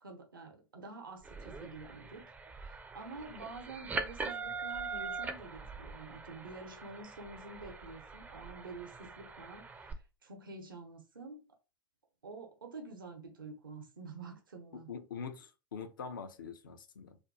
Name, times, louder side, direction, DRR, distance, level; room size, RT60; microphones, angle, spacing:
voice 1, 0.0-2.3 2.6-11.5 12.2-14.9, right 3 dB, 80° right, 0.7 m, -48 dB
sound 1, 1.2-9.9, right 4 dB, 15° right, 0.4 m, -43 dB
voice 2, 14.9-17.2, left 6 dB, 75° left, 0.5 m, -44 dB
2.5 x 2.2 x 2.6 m
figure-of-eight pair, 90°, 11 cm